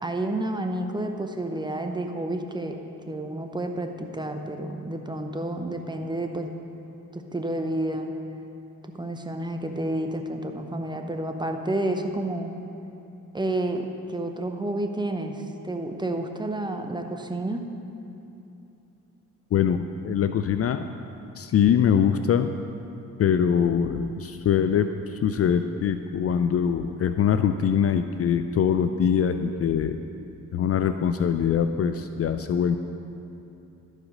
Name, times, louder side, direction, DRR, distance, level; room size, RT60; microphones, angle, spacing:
voice 1, 0.0-2.8 3.1-6.5 7.1-8.1 8.9-12.5 13.3-17.7, right 1 dB, 15° right, 5 dB, 0.7 m, -30 dB
voice 2, 19.5-20.9 21.4-22.5 23.2-30.0 30.5-32.8, left 8 dB, 45° left, 9 dB, 0.4 m, -23 dB
12.0 x 5.0 x 5.3 m, 2.8 s
cardioid pair, 70°, 34 cm